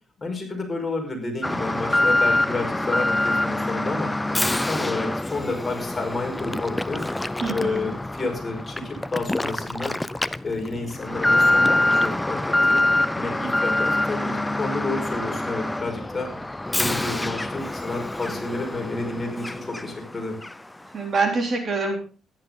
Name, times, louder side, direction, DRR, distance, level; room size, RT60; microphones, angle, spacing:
voice 1, 0.2-4.1 4.5-7.0 7.5-10.0 10.4-12.9 13.1-16.3 16.8-20.4, left 3 dB, 25° left, 2 dB, 5.4 m, -30 dB
Alarm, 1.4-20.1 20.4-20.5 21.1-21.2, left 1 dB, 10° left, 0.6 m, -25 dB
voice 2, 7.4-7.9 20.9-22.0, right 3 dB, 45° right, 3 dB, 3.6 m, -25 dB
14.0 x 11.0 x 4.0 m, 0.36 s
cardioid pair, 90°, 0 cm